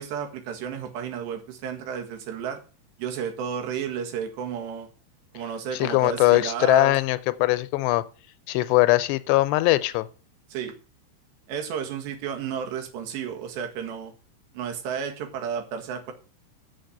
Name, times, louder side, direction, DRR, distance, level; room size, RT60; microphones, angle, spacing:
voice 1, 0.0-2.6 3.0-4.9 5.3-7.0 10.5-10.7 11.5-14.1 14.5-16.1, right 8 dB, 80° right, 3.9 m, -32 dB
voice 2, 5.7-8.0 8.5-10.1, left 18 dB, 85° left, 2.8 m, -21 dB
7.3 x 7.2 x 7.8 m
omnidirectional pair, 4.8 m